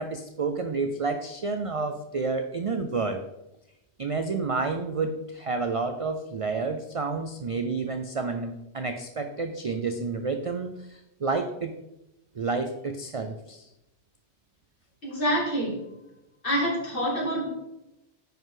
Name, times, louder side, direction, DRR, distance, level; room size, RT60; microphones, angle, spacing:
voice 1, 0.0-3.2 4.0-11.7 12.3-13.7, right 4 dB, 50° right, 7 dB, 0.4 m, -30 dB
voice 2, 15.0-15.8 16.4-17.5, equal, 50° left, -4 dB, 2.8 m, -26 dB
9.9 x 5.3 x 3.8 m, 0.90 s
omnidirectional pair, 1.2 m